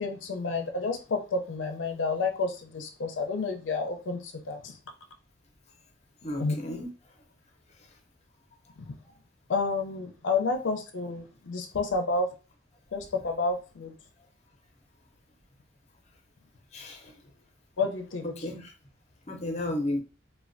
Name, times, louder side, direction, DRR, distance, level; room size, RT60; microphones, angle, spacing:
voice 1, 0.0-4.7 6.4-6.6 9.5-12.3 12.9-13.9 17.8-18.3, left 3 dB, 85° left, 3 dB, 0.5 m, -30 dB
voice 2, 6.2-6.9 16.7-17.1 18.4-18.7 19.3-20.0, left 1 dB, 35° left, 4 dB, 0.6 m, -33 dB
3.2 x 2.2 x 2.5 m, 0.34 s
head